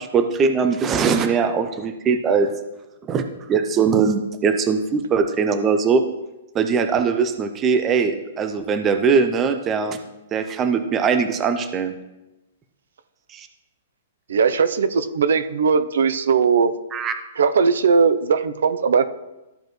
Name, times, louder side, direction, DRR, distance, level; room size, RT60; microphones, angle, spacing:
voice 1, 0.0-2.5 3.1-6.0 6.5-10.0 10.3-11.9 13.3-13.5 16.9-17.1, right 5 dB, 15° right, 8 dB, 0.4 m, -21 dB
voice 2, 14.3-16.7 17.4-19.1, right 5 dB, 75° right, 11 dB, 0.6 m, -19 dB
13.5 x 5.1 x 3.1 m, 0.99 s
hypercardioid pair, 175°, 0 cm